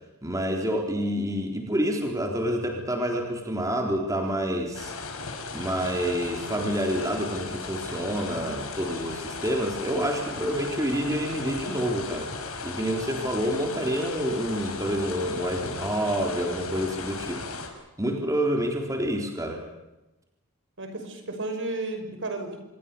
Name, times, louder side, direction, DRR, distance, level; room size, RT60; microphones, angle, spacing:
voice 1, 0.2-4.9 5.5-12.3 12.6-17.5 18.0-19.6, equal, 15° right, 2 dB, 3.8 m, -28 dB
sound 1, 4.7-17.7, left 4 dB, 75° left, 5.9 m, -36 dB
voice 2, 20.8-22.6, right 2 dB, 60° right, 6 dB, 5.8 m, -33 dB
26.5 x 22.5 x 7.0 m, 0.98 s
head